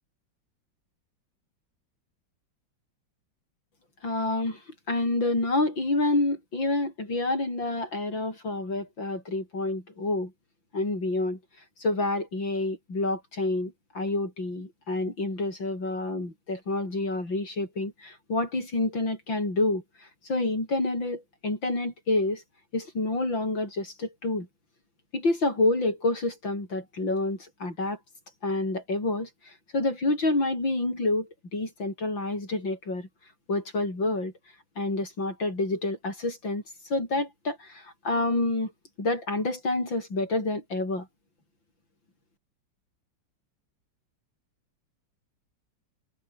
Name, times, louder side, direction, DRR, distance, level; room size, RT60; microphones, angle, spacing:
voice 1, 4.0-4.6 4.9-10.3 10.7-11.4 11.8-22.4 22.7-24.5 25.1-28.0 28.4-33.1 33.5-34.3 34.8-36.6 36.9-38.7 39.0-41.1, left 2 dB, 90° left, 8.8 m, -28 dB
open air
omnidirectional pair, 2.0 m